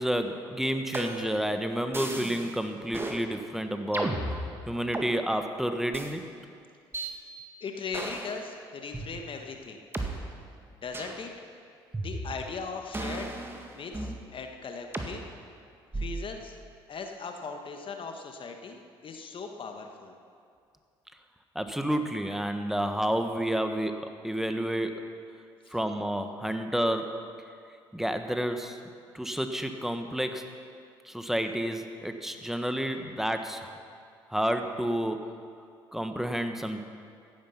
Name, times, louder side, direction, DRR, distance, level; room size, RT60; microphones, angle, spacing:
voice 1, 0.0-4.2 4.7-6.3 21.5-25.0 25.7-27.2 27.9-28.8 29.1-30.5 31.0-33.8 34.3-35.3 35.9-36.8, equal, 5° right, 7 dB, 1.4 m, -30 dB
sound 1, 0.9-1.4 1.9-2.5 2.9-3.2 3.9-5.1 5.9-6.1 6.9-7.1 7.9-8.4 8.9-9.0 9.9-10.1 10.9-11.2 11.9-12.5 12.9-14.2 14.9-15.1 15.9-16.3, right 2 dB, 20° right, 1.9 m, -34 dB
voice 2, 7.6-9.8 10.8-11.3 12.0-13.3 13.7-15.2 15.9-16.6 16.9-20.1 25.6-25.7, left 5 dB, 45° left, 4 dB, 1.4 m, -39 dB
15.5 x 10.5 x 5.8 m, 2.3 s
hypercardioid pair, 55°, 12 cm